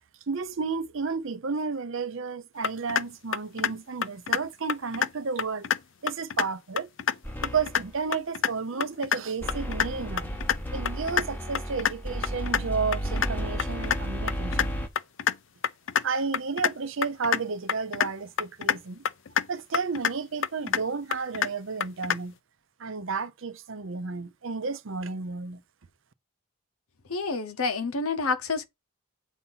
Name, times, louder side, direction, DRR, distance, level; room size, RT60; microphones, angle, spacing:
voice 1, 0.3-5.7 6.0-6.9 7.4-10.3 10.7-14.7 16.0-19.0 19.5-22.4 22.8-25.6, right 4 dB, 60° right, 0.6 m, -32 dB
sound 1, 2.6-3.0 3.3-3.7 4.0-4.4 4.7-5.1 5.4-5.8 6.1-6.5 6.8-7.1 7.4-7.8 8.1-8.5 8.8-9.2 9.5-9.9 10.2-10.6 10.9-11.2 11.5-11.9 12.2-12.6 12.9-13.3 13.6-14.0 14.3-14.7 15.0-15.4 15.6-16.0 16.3-16.7 17.0-17.4 17.7-18.1 18.4-18.8 19.1-19.5 19.7-20.1 20.4-20.8 21.1-21.5 21.8-22.2, left 8 dB, 55° left, 0.4 m, -26 dB
sound 2, 7.2-8.0 9.4-14.9, equal, 10° left, 0.7 m, -33 dB
voice 2, 27.1-28.6, left 4 dB, 75° left, 1.0 m, -28 dB
8.0 x 2.8 x 5.5 m
head